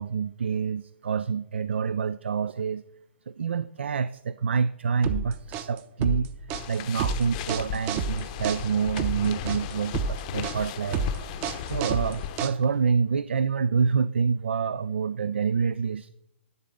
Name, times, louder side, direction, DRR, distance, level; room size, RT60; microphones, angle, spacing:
voice 1, 0.0-2.8 3.3-6.3 6.7-11.1 11.6-16.1, right 6 dB, 65° right, 15 dB, 0.4 m, -27 dB
sound 1, 5.0-12.9, right 5 dB, 25° right, 0.7 m, -30 dB
sound 2, 6.5-12.4, left 10 dB, 35° left, 0.8 m, -36 dB
11.0 x 3.9 x 6.9 m, 0.82 s
figure-of-eight pair, 125°, 7 cm